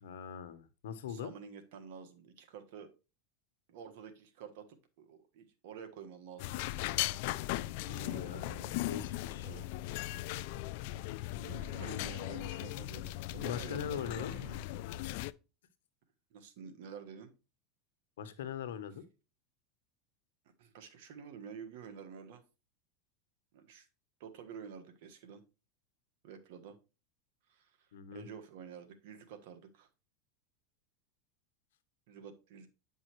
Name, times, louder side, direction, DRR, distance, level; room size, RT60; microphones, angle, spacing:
voice 1, 0.0-1.3 8.0-8.4 8.9-9.5 10.3-10.4 13.4-14.3 18.2-19.0 27.9-28.3, left 8 dB, 90° left, 11 dB, 1.0 m, -41 dB
voice 2, 1.1-2.9 3.7-6.7 7.8-8.9 9.4-9.7 10.1-10.4 11.4-14.6 16.3-17.3 20.6-22.4 23.5-23.9 24.2-25.4 26.2-26.8 27.5-29.9 32.1-32.7, right 6 dB, 70° right, 7 dB, 1.4 m, -49 dB
sound 1, 6.4-15.3, left 16 dB, 65° left, 0.3 m, -38 dB
9.1 x 5.4 x 3.0 m, 0.30 s
supercardioid pair, 125°, 0 cm